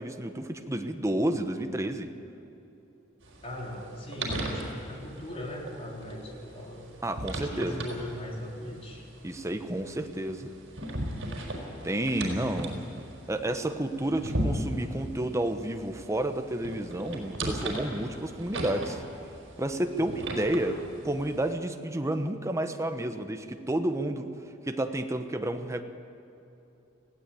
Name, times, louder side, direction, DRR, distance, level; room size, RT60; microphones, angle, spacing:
voice 1, 0.0-2.1 7.0-7.8 9.2-10.5 11.8-12.9 13.3-19.0 19.6-24.3 24.7-25.8, right 1 dB, 15° right, 7 dB, 1.1 m, -30 dB
sound 1, 3.2-21.5, right 1 dB, 75° right, 4.6 m, -38 dB
voice 2, 3.4-6.9 7.3-9.0 20.0-20.2, left 1 dB, 30° left, -1 dB, 3.6 m, -39 dB
19.5 x 16.0 x 8.5 m, 2.9 s
head